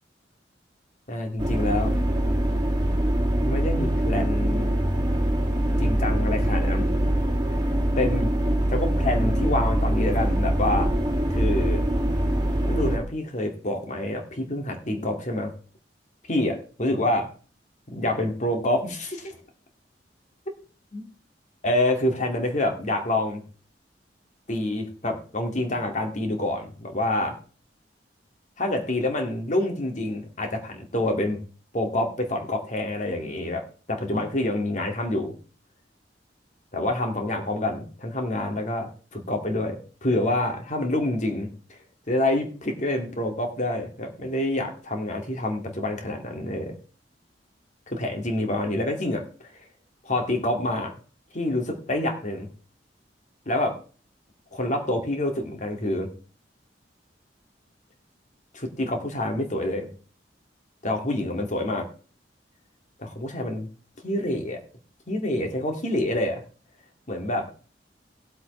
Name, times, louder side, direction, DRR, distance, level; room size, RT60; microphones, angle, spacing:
voice 1, 1.1-2.0 2.5-2.6 3.4-4.7 5.8-6.9 8.0-8.3 8.7-10.9 11.3-11.8 12.6-15.5 16.3-17.3 17.9-19.4 20.9-21.0 21.6-23.4 24.5-27.4 28.6-31.4 31.7-33.6 33.9-35.3 36.7-41.8 42.1-46.8 47.9-49.2 50.0-50.9 51.3-52.5 53.5-53.8 54.5-56.1 58.5-59.9 60.8-61.9 63.0-63.7 64.0-64.6 65.1-66.4 67.1-67.5, left 1 dB, 45° left, 3 dB, 2.1 m, -27 dB
sound 1, 1.4-13.0, right 1 dB, 25° right, 2.0 m, -23 dB
18.5 x 7.8 x 3.2 m, 0.39 s
head